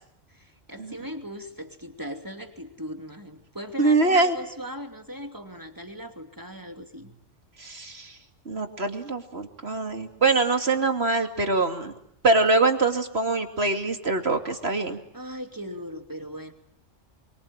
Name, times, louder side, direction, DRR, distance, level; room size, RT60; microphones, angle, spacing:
voice 1, 0.3-7.2 15.1-16.5, equal, 15° right, 5 dB, 2.9 m, -38 dB
voice 2, 3.8-4.3 7.6-8.2 8.5-11.9 12.2-15.0, right 3 dB, 55° right, 6 dB, 2.8 m, -23 dB
26.5 x 24.5 x 8.9 m, 0.74 s
omnidirectional pair, 1.3 m